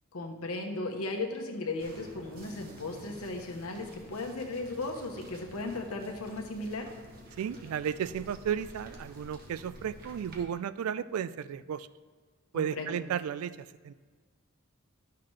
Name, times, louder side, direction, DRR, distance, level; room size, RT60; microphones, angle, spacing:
voice 1, 0.1-6.9 12.5-13.0, left 2 dB, 85° left, 3 dB, 1.0 m, -36 dB
sound 1, 1.8-10.4, equal, 45° right, 1.0 m, -50 dB
voice 2, 7.4-11.9 12.5-13.9, right 8 dB, 80° right, 17 dB, 0.3 m, -34 dB
11.5 x 5.8 x 3.2 m, 1.5 s
head